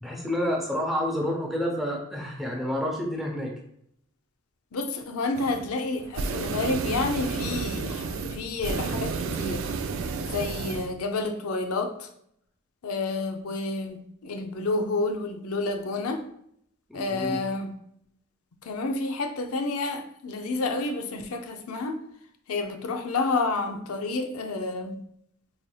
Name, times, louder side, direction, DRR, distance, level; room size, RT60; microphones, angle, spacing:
voice 1, 0.0-3.5 16.9-17.4, equal, ahead, -1 dB, 0.6 m, -29 dB
voice 2, 4.7-9.6 10.2-12.1 12.8-14.0 14.2-16.2 16.9-17.7 18.6-22.0 22.5-25.0, left 3 dB, 90° left, 5 dB, 0.5 m, -29 dB
sound 1, 5.3-5.7 6.0-10.9, right 4 dB, 65° right, 0.3 m, -31 dB
4.1 x 3.1 x 2.2 m, 0.71 s
head